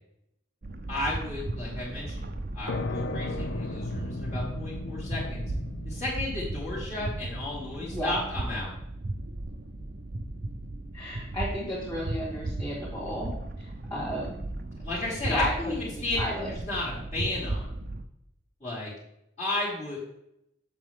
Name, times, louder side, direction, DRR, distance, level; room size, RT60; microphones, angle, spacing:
sound 1, 0.6-18.0, right 2 dB, 45° right, 0.6 m, -36 dB
voice 1, 0.9-5.4 5.8-8.7 14.8-17.7 18.6-18.9 19.4-20.2, left 2 dB, 35° left, -11 dB, 2.7 m, -33 dB
sound 2, 2.7-10.1, left 2 dB, 65° left, 0.6 m, -37 dB
voice 2, 10.9-13.3 13.6-14.3 15.2-16.5, equal, 15° left, -9 dB, 2.6 m, -33 dB
7.7 x 6.9 x 3.7 m, 0.81 s
head